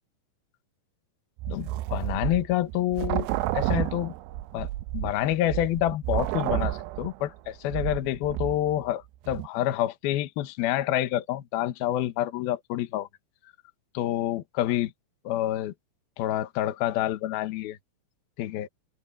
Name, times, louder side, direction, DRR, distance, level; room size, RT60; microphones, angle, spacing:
sound 1, 1.4-8.9 9.3-9.5, right 15 dB, 90° right, 2.9 m, -31 dB
voice 1, 1.5-3.3 3.5-4.1 4.5-4.7 4.9-13.1 13.9-14.9 15.2-15.7 16.2-17.8 18.4-18.7, left 13 dB, 65° left, 2.9 m, -28 dB
omnidirectional pair, 5.0 m